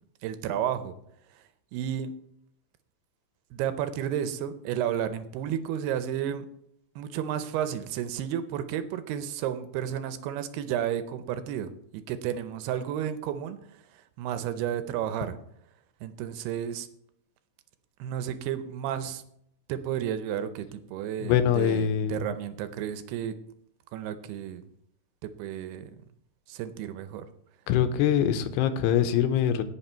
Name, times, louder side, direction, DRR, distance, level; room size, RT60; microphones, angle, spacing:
voice 1, 0.2-0.9 1.7-2.1 3.5-6.5 7.0-13.6 13.9-15.4 16.0-16.9 18.0-19.2 19.7-23.4 23.9-24.6 25.2-25.9 26.5-27.3, right 10 dB, 85° right, 10 dB, 2.7 m, -32 dB
voice 2, 21.2-22.3 27.7-29.6, left 9 dB, 90° left, 10 dB, 2.9 m, -24 dB
17.5 x 5.9 x 4.4 m, 0.72 s
omnidirectional pair, 4.6 m